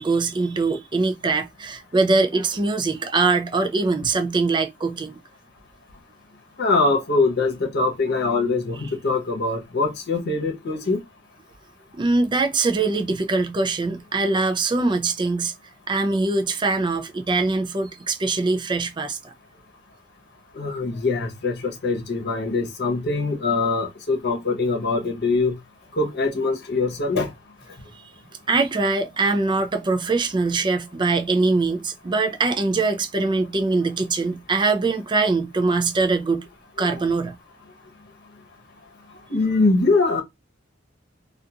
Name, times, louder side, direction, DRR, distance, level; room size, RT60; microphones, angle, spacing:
voice 1, 0.0-5.2 11.9-15.5 15.9-19.3 28.5-36.5 36.8-37.4, right 3 dB, 25° right, 0.4 m, -22 dB
voice 2, 6.6-11.0 20.6-25.5 25.9-27.3 36.8-37.0 39.3-40.2, left 3 dB, 55° left, 0.9 m, -23 dB
2.8 x 2.4 x 2.3 m
head